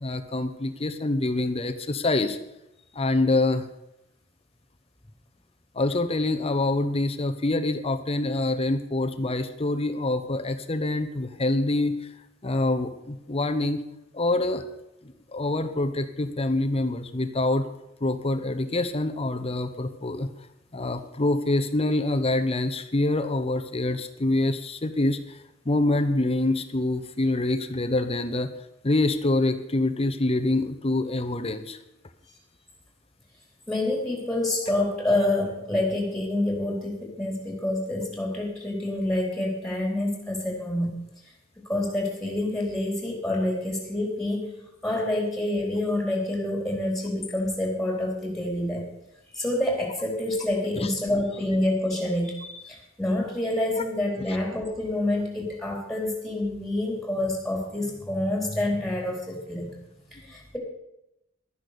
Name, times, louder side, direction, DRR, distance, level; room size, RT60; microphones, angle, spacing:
voice 1, 0.0-2.4 2.9-3.7 5.7-12.1 12.4-13.8 14.1-14.6 15.0-17.7 18.0-20.3 20.7-25.4 25.6-28.5 28.8-31.8 50.8-50.9, left 2 dB, 30° left, 9 dB, 0.8 m, -26 dB
voice 2, 33.7-41.0 41.7-44.5 44.8-48.8 49.3-59.7 60.1-60.6, left 1 dB, ahead, 0 dB, 4.0 m, -27 dB
12.5 x 10.5 x 6.8 m, 0.87 s
head